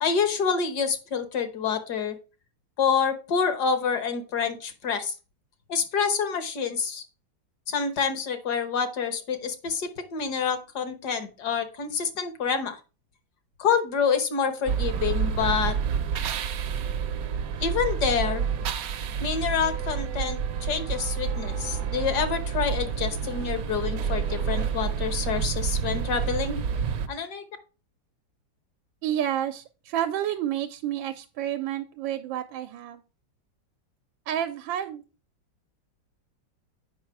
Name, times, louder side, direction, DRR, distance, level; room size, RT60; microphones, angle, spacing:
voice 1, 0.0-2.2 2.8-5.1 5.7-7.0 7.7-12.8 13.6-15.8 17.6-18.5 19.2-26.6 27.1-27.4, left 6 dB, 60° left, 9 dB, 1.6 m, -27 dB
sound 1, 14.7-27.1, right 7 dB, 65° right, 0.9 m, -29 dB
sound 2, 21.2-26.9, left 5 dB, 90° left, 2.7 m, -49 dB
voice 2, 29.0-33.0 34.3-35.0, right 11 dB, 90° right, 8 dB, 1.3 m, -30 dB
8.0 x 5.4 x 4.6 m, 0.33 s
omnidirectional pair, 2.0 m